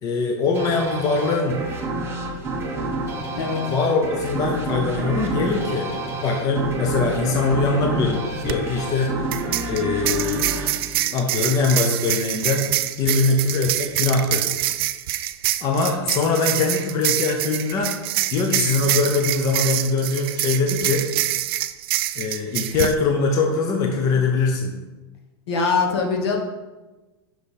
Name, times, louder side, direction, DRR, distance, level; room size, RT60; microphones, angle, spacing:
voice 1, 0.0-1.6 3.7-5.9 6.2-9.3 9.7-10.5 11.1-12.7 13.0-14.5 15.6-18.0 18.3-21.1 22.1-24.8, left 3 dB, 25° left, 2 dB, 0.7 m, -22 dB
sound 1, 0.5-11.8, right 2 dB, 15° right, 0.9 m, -29 dB
voice 2, 3.3-3.7 25.5-26.4, left 4 dB, 70° left, 1 dB, 1.4 m, -22 dB
sound 2, 8.3-8.5 9.3-22.9, right 14 dB, 60° right, 0.4 m, -25 dB
6.0 x 5.1 x 4.3 m, 1.2 s
supercardioid pair, 160°, 14 cm